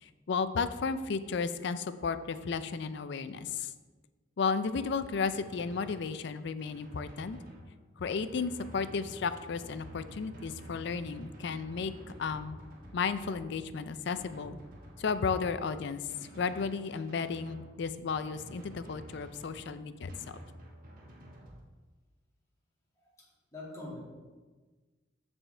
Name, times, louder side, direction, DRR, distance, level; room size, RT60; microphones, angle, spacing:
voice 1, 0.0-3.7 4.4-7.4 8.0-11.9 12.2-12.6 12.9-14.6 15.0-16.0 16.4-20.4, left 5 dB, 60° left, 12 dB, 0.4 m, -33 dB
Drum, 5.2-21.6, right 1 dB, 45° right, 1.3 m, -50 dB
voice 2, 23.0-24.0, left 2 dB, 15° left, -5 dB, 2.2 m, -45 dB
13.0 x 4.4 x 3.3 m, 1.3 s
head